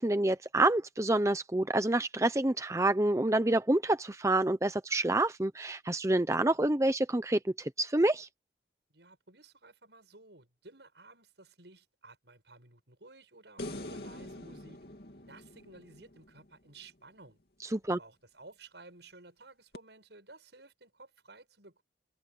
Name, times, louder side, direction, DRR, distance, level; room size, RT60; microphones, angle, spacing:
voice 1, 0.0-8.3 17.7-18.0, right 2 dB, 15° right, 0.7 m, -28 dB
voice 2, 8.9-14.8 15.3-17.4 18.0-21.8, right 3 dB, 80° right, 7.7 m, -55 dB
sound 1, 13.6-16.9 19.7-19.8, left 1 dB, 60° left, 2.8 m, -45 dB
head